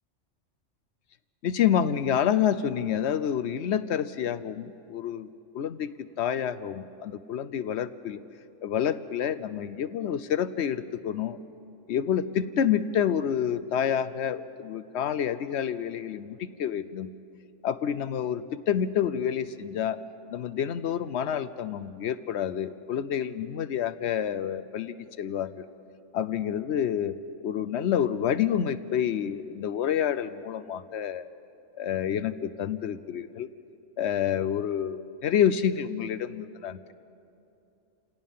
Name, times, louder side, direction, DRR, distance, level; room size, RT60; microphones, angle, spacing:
voice 1, 1.4-5.3 5.5-8.2 8.6-11.4 11.9-17.1 17.6-20.0 20.3-25.6 26.1-27.2 27.4-31.3 31.8-33.5 34.0-36.9, left 9 dB, 65° left, 14 dB, 0.9 m, -28 dB
28.5 x 17.5 x 5.6 m, 2.7 s
omnidirectional pair, 1.3 m